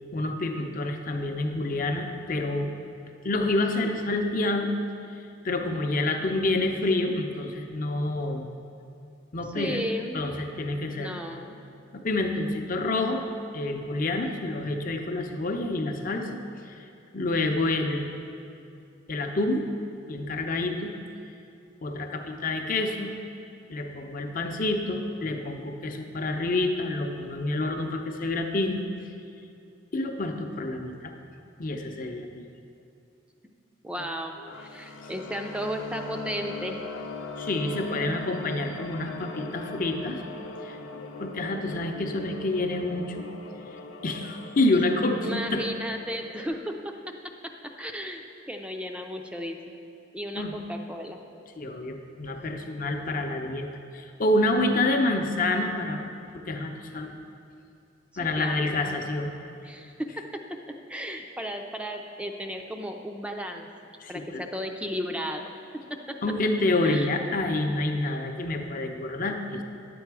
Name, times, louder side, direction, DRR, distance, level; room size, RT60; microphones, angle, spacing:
voice 1, 0.1-2.7 3.2-4.7 5.1-5.2 5.4-8.4 9.3-9.8 10.1-11.1 11.9-13.2 13.5-16.9 17.1-18.1 19.1-19.6 20.1-20.9 21.8-23.1 23.7-28.8 29.9-31.1 31.6-32.5 34.4-34.5 37.4-40.2 40.6-40.8 41.2-43.2 44.0-45.6 50.3-50.6 51.6-53.7 53.9-56.0 56.4-57.2 58.2-59.3 64.0-64.4 66.2-69.6, left 2 dB, 45° left, 4 dB, 0.7 m, -28 dB
voice 2, 9.6-10.2 10.9-11.6 33.8-34.3 34.6-36.9 45.2-46.9 47.8-48.2 48.5-49.8 50.1-51.2 56.9-57.1 58.4-58.9 59.6-60.6 60.9-63.7 64.1-65.5 66.1-66.2 66.8-67.1, equal, 5° right, 3 dB, 0.5 m, -34 dB
sound 1, 34.5-46.4, left 3 dB, 85° left, 0.6 m, -40 dB
9.9 x 7.8 x 4.7 m, 2.6 s
head